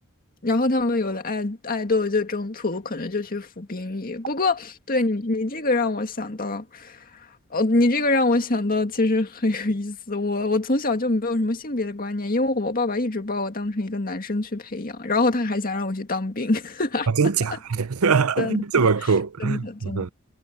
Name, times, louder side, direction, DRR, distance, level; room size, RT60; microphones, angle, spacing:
voice 1, 0.4-7.0 7.5-17.1 18.4-18.9 19.4-20.1, left 2 dB, 40° left, 2.0 m, -25 dB
voice 2, 17.1-20.1, right 5 dB, 85° right, 0.7 m, -22 dB
head